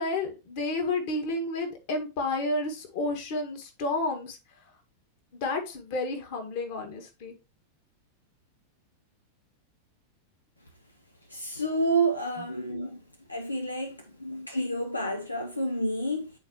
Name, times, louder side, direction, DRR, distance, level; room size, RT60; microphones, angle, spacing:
voice 1, 0.0-4.6 5.3-7.4 12.4-12.5, left 2 dB, 45° left, 1.8 m, -31 dB
voice 2, 11.3-13.0 13.3-16.3, right 1 dB, 85° left, 0.6 m, -29 dB
9.0 x 4.3 x 3.0 m
figure-of-eight pair, 90°, 0 cm